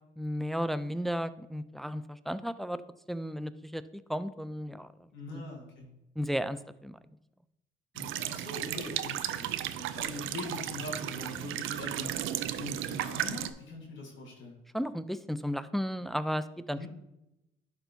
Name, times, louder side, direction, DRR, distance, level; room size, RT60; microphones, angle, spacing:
voice 1, 0.2-2.8 3.1-3.8 4.1-4.9 5.3-5.4 6.2-7.0 14.7-16.9, equal, ahead, 12 dB, 0.3 m, -34 dB
voice 2, 5.1-5.9 7.9-12.2 12.5-14.6 16.7-16.9, left 2 dB, 70° left, -1 dB, 1.7 m, -42 dB
sound 1, 8.0-13.5, right 12 dB, 85° right, 0.4 m, -35 dB
11.0 x 4.3 x 2.7 m, 0.90 s
cardioid pair, 90°, 20 cm